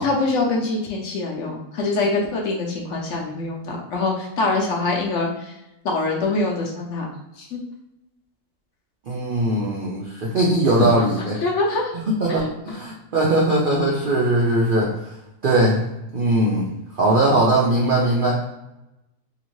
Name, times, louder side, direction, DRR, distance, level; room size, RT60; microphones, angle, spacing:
voice 1, 0.0-5.5 5.8-7.6 10.8-11.9 12.3-12.5, left 3 dB, 65° left, -1 dB, 0.8 m, -24 dB
voice 2, 9.1-11.4 12.1-14.9 15.4-15.8 16.1-16.7 16.9-18.5, right 1 dB, 80° right, -3 dB, 0.4 m, -20 dB
2.8 x 2.6 x 3.0 m, 0.93 s
omnidirectional pair, 1.6 m